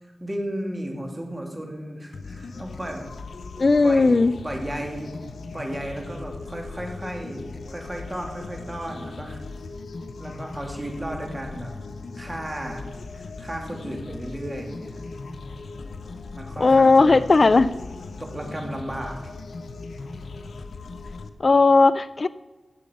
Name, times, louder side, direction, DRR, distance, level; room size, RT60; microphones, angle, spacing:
voice 1, 0.0-3.1 3.8-5.2 5.5-9.4 10.2-11.7 12.1-12.8 13.1-15.0 16.3-17.2 17.5-17.6 18.2-19.3, right 1 dB, 20° right, 2 dB, 3.0 m, -34 dB
sound 1, 2.1-21.3, left 3 dB, 85° left, 0.8 m, -38 dB
voice 2, 3.6-4.3 16.6-17.7 21.4-22.3, left 3 dB, 50° left, 15 dB, 0.3 m, -16 dB
16.0 x 7.5 x 5.4 m, 1.2 s
wide cardioid pair, 65°, 0 cm